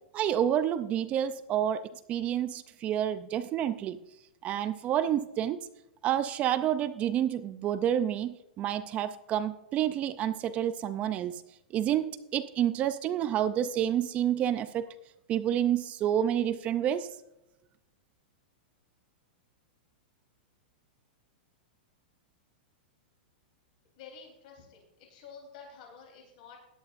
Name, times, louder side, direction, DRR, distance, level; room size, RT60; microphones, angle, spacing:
voice 1, 0.1-1.8 2.1-4.0 4.4-5.6 6.0-11.4 11.7-14.9 15.3-17.1, right 10 dB, 25° right, 0.5 m, -29 dB
voice 2, 24.0-26.6, left 6 dB, 55° left, 3.8 m, -50 dB
16.5 x 11.0 x 2.5 m
supercardioid pair, 150°, 5 cm